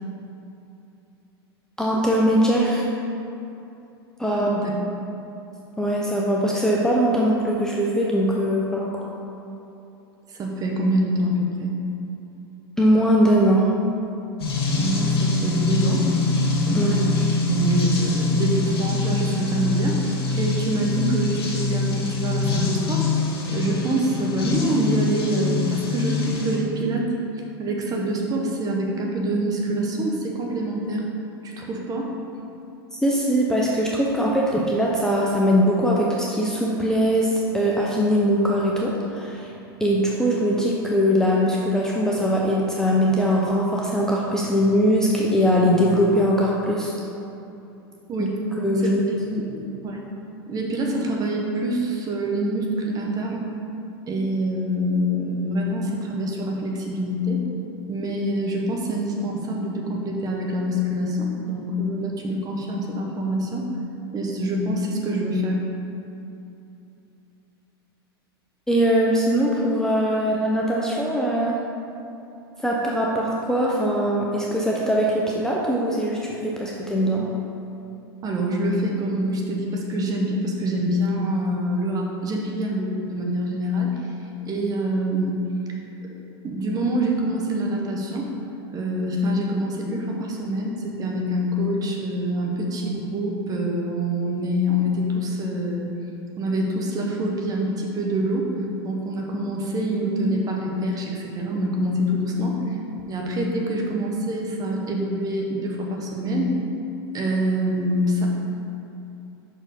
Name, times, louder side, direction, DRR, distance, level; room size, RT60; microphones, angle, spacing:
voice 1, 1.8-2.8 4.2-4.6 5.8-9.0 12.8-13.7 16.7-17.0 32.9-46.9 48.2-48.3 48.6-49.0 49.3-49.6 68.7-71.6 72.6-77.3, equal, 5° left, -4 dB, 0.6 m, -21 dB
voice 2, 4.3-4.7 10.3-11.8 14.8-16.1 16.7-17.1 17.4-23.1 23.5-27.1 27.6-31.1 31.4-32.1 48.1-48.4 48.8-49.2 49.8-50.0 50.5-53.5 54.1-57.4 57.9-63.7 64.1-65.6 78.2-84.0 84.4-85.4 86.4-88.3 88.7-95.9 96.4-98.5 98.8-102.8 103.1-106.6 107.1-108.3, equal, 30° right, 0 dB, 1.1 m, -25 dB
sound 1, 14.4-26.6, left 3 dB, 85° left, 1.5 m, -24 dB
5.8 x 4.6 x 5.2 m, 2.8 s
hypercardioid pair, 110°, 13 cm